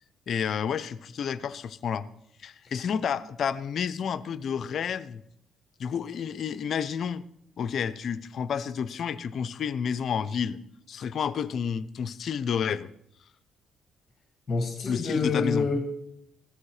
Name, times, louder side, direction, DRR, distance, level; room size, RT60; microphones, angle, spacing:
voice 1, 0.3-2.1 2.4-5.2 5.8-7.2 7.6-10.6 10.9-12.9 14.9-15.7, left 7 dB, 60° left, 15 dB, 0.7 m, -30 dB
voice 2, 14.5-16.0, left 4 dB, 40° left, 4 dB, 2.1 m, -27 dB
16.0 x 13.0 x 4.9 m, 0.74 s
cardioid pair, 90°, 0 cm